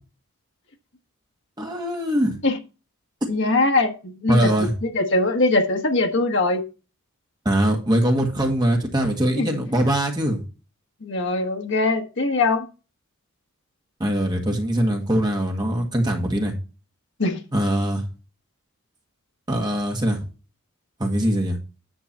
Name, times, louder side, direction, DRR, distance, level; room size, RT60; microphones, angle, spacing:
voice 1, 1.6-2.4 4.3-4.7 7.4-10.4 14.0-16.5 17.5-18.0 19.5-20.3 21.0-21.6, right 1 dB, 20° right, 1.6 m, -22 dB
voice 2, 3.3-6.6 9.4-9.5 11.0-12.7 17.2-17.4, left 2 dB, 55° left, 1.3 m, -22 dB
10.0 x 3.8 x 7.2 m
head